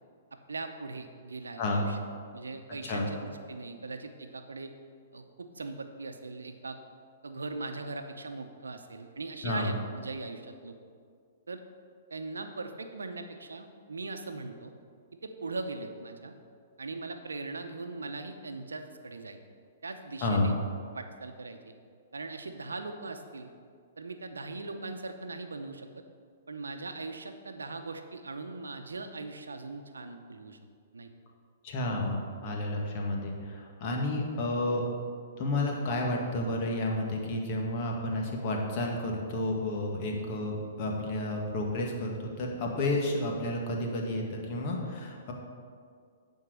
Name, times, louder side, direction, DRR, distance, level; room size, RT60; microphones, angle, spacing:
voice 1, 0.5-2.0 2.3-4.7 5.1-6.8 7.2-10.7 11.5-11.6 12.1-14.7 15.2-16.3 16.8-19.4 19.8-20.5 20.9-21.7 22.1-23.5 24.0-26.0 26.5-30.6 30.9-31.1 40.1-40.3, right 3 dB, 90° right, 7 dB, 0.7 m, -40 dB
voice 2, 9.4-9.7 20.2-20.6 31.6-34.8 35.4-45.3, left 1 dB, 45° left, 0 dB, 1.8 m, -31 dB
9.7 x 4.6 x 6.3 m, 2.2 s
hypercardioid pair, 125°, 0 cm